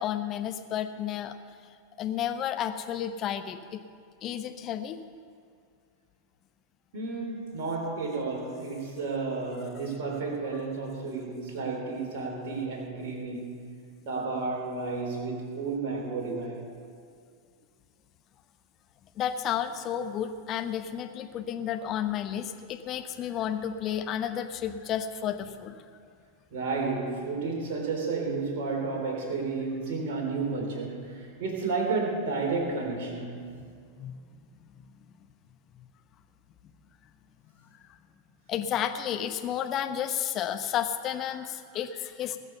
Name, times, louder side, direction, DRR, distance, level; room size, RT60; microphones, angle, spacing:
voice 1, 0.0-1.3 2.0-3.8 4.2-5.0 19.2-25.8 34.0-34.1 38.5-42.4, left 9 dB, 35° left, 8 dB, 0.9 m, -32 dB
voice 2, 6.9-13.6 14.0-16.6 26.5-33.5, right 4 dB, 50° right, 0 dB, 3.6 m, -32 dB
19.5 x 6.8 x 7.0 m, 2.2 s
figure-of-eight pair, 90°, 0 cm